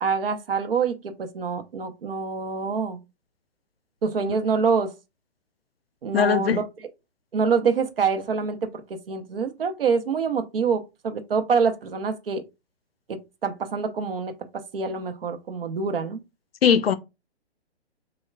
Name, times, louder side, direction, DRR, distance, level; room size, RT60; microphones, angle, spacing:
voice 1, 0.0-3.0 4.0-4.9 6.0-6.6 7.3-8.8 9.1-12.4 13.1-14.3 14.7-16.2, right 5 dB, 60° right, 0.8 m, -25 dB
voice 2, 6.1-6.6 16.6-16.9, left 7 dB, 60° left, 0.5 m, -19 dB
6.4 x 2.3 x 2.2 m
figure-of-eight pair, 130°, 33 cm